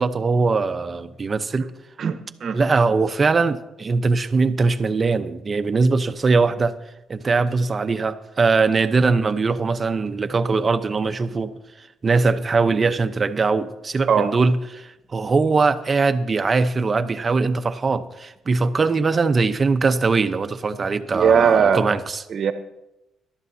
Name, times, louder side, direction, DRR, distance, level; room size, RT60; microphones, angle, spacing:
voice 1, 0.0-1.7 2.5-6.7 7.1-11.6 12.0-22.2, right 4 dB, 35° right, 0.8 m, -21 dB
voice 2, 2.0-2.6 14.1-14.3 21.1-21.9 22.3-22.5, right 7 dB, 60° right, 1.1 m, -19 dB
21.5 x 12.0 x 2.8 m
cardioid pair, 90°, 0 cm